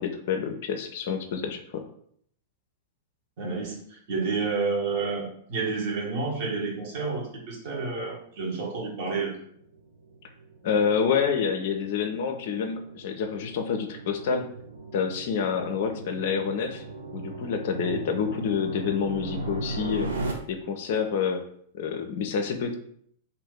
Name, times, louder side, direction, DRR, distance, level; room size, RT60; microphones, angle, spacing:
voice 1, 0.0-1.8 10.6-14.5 14.9-16.8 17.1-20.1 20.5-21.4 21.7-22.8, left 6 dB, 55° left, 6 dB, 0.4 m, -28 dB
voice 2, 3.4-9.3, right 4 dB, 50° right, -2 dB, 1.1 m, -30 dB
sound 1, 9.4-20.3, right 2 dB, 70° right, 0.6 m, -38 dB
2.7 x 2.6 x 3.6 m, 0.65 s
figure-of-eight pair, 95°, 0 cm